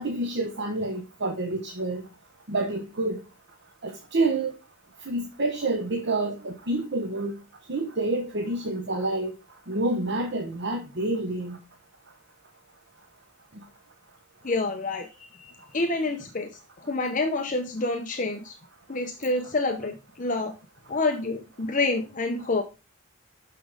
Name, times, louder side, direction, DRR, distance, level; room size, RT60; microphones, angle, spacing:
voice 1, 0.0-2.0 2.5-3.2 3.8-4.5 5.1-7.4 7.7-9.3 9.7-11.6 13.6-13.7, right 2 dB, 50° right, 0.9 m, -28 dB
voice 2, 14.4-15.1 15.4-16.5 16.8-18.5 18.9-20.5 20.9-22.6, left 2 dB, 35° left, 0.7 m, -28 dB
6.1 x 6.0 x 4.8 m
head